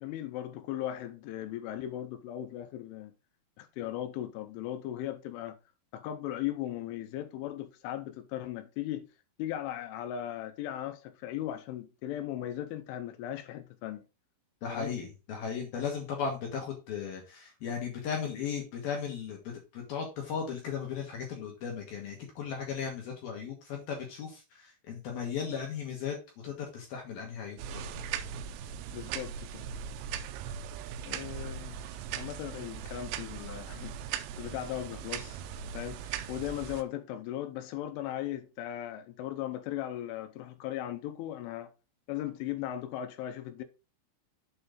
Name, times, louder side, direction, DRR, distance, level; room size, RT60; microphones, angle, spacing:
voice 1, 0.0-3.1 3.6-5.6 5.9-9.1 9.4-14.0 14.7-14.9 28.9-29.6 31.0-34.0 34.4-35.4 35.7-41.7 42.1-43.6, left 12 dB, 80° left, 3.1 m, -37 dB
voice 2, 14.6-26.2 26.4-28.0, left 6 dB, 60° left, 2.7 m, -36 dB
sound 1, 27.6-36.8, right 8 dB, 85° right, 3.4 m, -39 dB
7.9 x 4.4 x 5.1 m
omnidirectional pair, 5.9 m